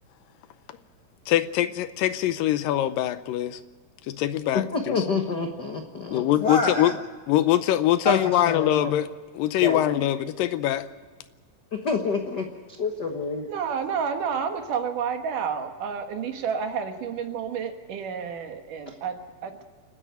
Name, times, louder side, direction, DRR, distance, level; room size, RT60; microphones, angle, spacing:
voice 1, 1.3-3.6 4.1-5.0 6.1-6.9 7.3-9.1 9.3-10.9, left 13 dB, 80° left, 13 dB, 2.4 m, -23 dB
voice 2, 4.5-7.0 8.0-8.9 9.6-10.0 11.7-12.5 12.8-13.5, left 4 dB, 60° left, 4 dB, 1.0 m, -27 dB
voice 3, 13.5-19.6, right 6 dB, 70° right, 6 dB, 2.9 m, -30 dB
28.5 x 9.9 x 9.2 m, 1.5 s
omnidirectional pair, 4.0 m